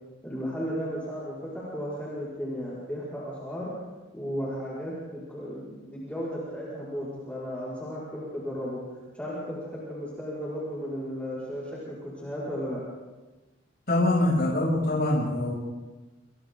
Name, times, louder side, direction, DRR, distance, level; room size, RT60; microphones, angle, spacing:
voice 1, 0.2-3.7 4.1-12.8, equal, 5° left, -8 dB, 5.8 m, -35 dB
voice 2, 13.9-15.6, left 1 dB, 50° left, -6 dB, 7.7 m, -24 dB
29.5 x 29.0 x 4.0 m, 1.2 s
head